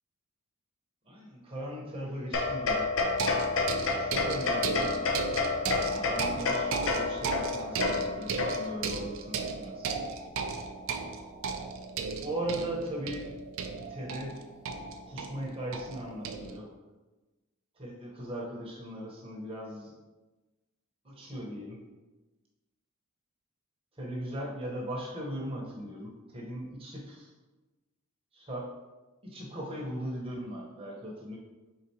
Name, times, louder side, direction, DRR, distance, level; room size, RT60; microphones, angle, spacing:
voice 1, 1.0-2.9 4.0-4.9 5.9-10.0 12.2-13.3 13.9-14.4 15.0-16.7 17.7-19.9 21.0-21.8 23.9-27.3 28.3-28.7 29.2-31.4, right 1 dB, 25° right, -3 dB, 0.9 m, -38 dB
sound 1, 2.3-8.9, left 4 dB, 60° left, 0.6 m, -30 dB
sound 2, 3.0-16.6, right 4 dB, 60° right, 0.4 m, -35 dB
4.5 x 3.8 x 2.8 m, 1.1 s
head